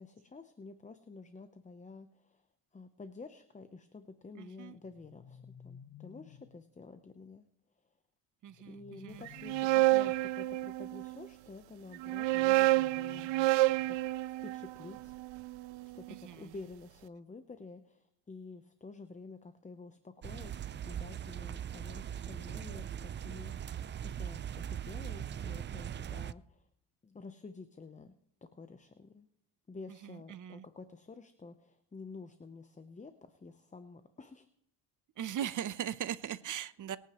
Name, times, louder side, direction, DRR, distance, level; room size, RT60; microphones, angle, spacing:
voice 1, 0.0-2.5 2.7-7.4 8.6-15.2 15.8-23.8 24.0-26.7 27.0-28.1 28.4-29.3 29.7-34.5, left 3 dB, 15° left, 10 dB, 0.7 m, -50 dB
voice 2, 4.3-4.8 8.4-9.3 16.1-16.5 30.0-30.6 35.2-37.0, right 10 dB, 45° right, 16 dB, 0.7 m, -39 dB
sound 1, 4.8-6.6 8.5-10.3 12.2-14.1, left 8 dB, 50° left, 1.3 m, -55 dB
sound 2, 9.3-11.2 11.9-16.1, right 19 dB, 85° right, 0.5 m, -29 dB
sound 3, 20.2-26.3, right 9 dB, 30° right, 0.3 m, -40 dB
23.0 x 9.2 x 3.0 m, 0.79 s
cardioid pair, 95°, 44 cm